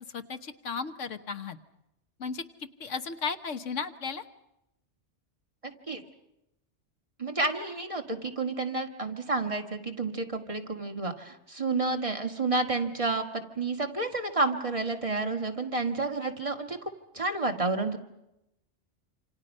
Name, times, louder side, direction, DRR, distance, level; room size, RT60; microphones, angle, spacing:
voice 1, 0.1-1.6 2.2-4.2, left 5 dB, 85° left, 10 dB, 1.5 m, -35 dB
voice 2, 7.2-18.0, right 3 dB, 25° right, 4 dB, 1.9 m, -30 dB
28.0 x 26.5 x 5.5 m, 0.87 s
omnidirectional pair, 1.2 m